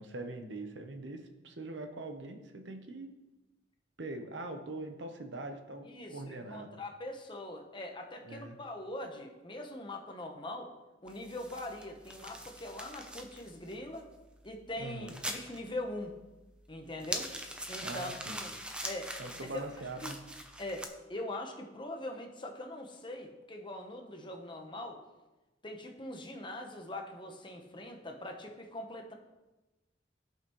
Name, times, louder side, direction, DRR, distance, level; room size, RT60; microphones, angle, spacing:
voice 1, 0.0-3.1 4.0-6.8 8.2-8.6 14.8-15.1 17.8-18.4 19.2-20.2, right 2 dB, 65° right, 5 dB, 0.9 m, -42 dB
voice 2, 5.8-10.7 11.0-14.1 14.4-16.1 16.7-17.3 17.7-18.5 18.8-19.1 19.4-19.7 20.0-20.1 20.6-25.0 25.6-29.1, left 1 dB, 25° left, 3 dB, 0.9 m, -42 dB
sound 1, 11.1-20.9, right 1 dB, 5° right, 0.6 m, -44 dB
15.0 x 5.5 x 3.1 m, 1.1 s
head